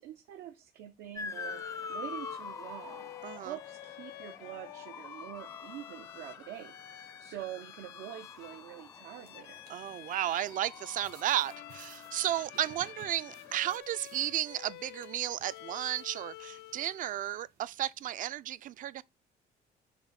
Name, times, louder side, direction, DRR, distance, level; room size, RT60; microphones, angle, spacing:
voice 1, 0.0-6.7 7.0-9.6, right 12 dB, 90° right, 0.7 m, -45 dB
Motor vehicle (road) / Siren, 1.2-13.8, left 4 dB, 20° left, 0.4 m, -47 dB
Bowed string instrument, 1.3-17.1, left 16 dB, 80° left, 0.4 m, -49 dB
voice 2, 3.2-3.6 9.7-19.0, right 12 dB, 55° right, 0.4 m, -33 dB
sound 1, 8.2-18.1, right 8 dB, 70° right, 1.8 m, -60 dB
6.9 x 2.7 x 5.7 m
cardioid pair, 110°, 17 cm